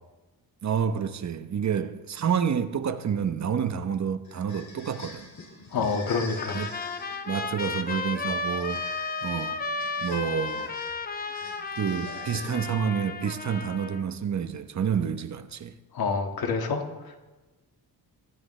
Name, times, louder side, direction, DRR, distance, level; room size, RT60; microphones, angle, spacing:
voice 1, 0.6-5.3 5.8-6.0 6.5-6.7 7.3-9.6 10.0-10.8 11.8-15.7, right 7 dB, 45° right, 1.0 m, -29 dB
sound 1, 4.2-12.9, left 3 dB, 50° left, 4.4 m, -45 dB
voice 2, 5.7-6.6 15.9-17.3, left 4 dB, 70° left, 2.0 m, -28 dB
Trumpet, 6.4-14.0, left 3 dB, 25° left, 0.9 m, -33 dB
24.0 x 12.0 x 3.3 m
cardioid pair, 120°, 38 cm